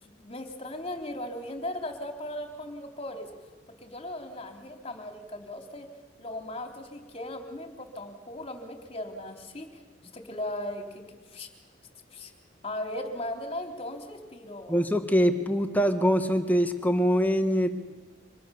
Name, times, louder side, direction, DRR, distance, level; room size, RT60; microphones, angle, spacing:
voice 1, 0.0-3.3 3.7-5.9 6.2-9.8 10.1-11.0 11.3-11.5 12.1-12.3 12.6-14.9, left 1 dB, 30° left, 4 dB, 3.4 m, -37 dB
voice 2, 14.7-17.7, equal, 10° left, 7 dB, 1.6 m, -23 dB
29.5 x 25.5 x 7.1 m, 1.3 s
head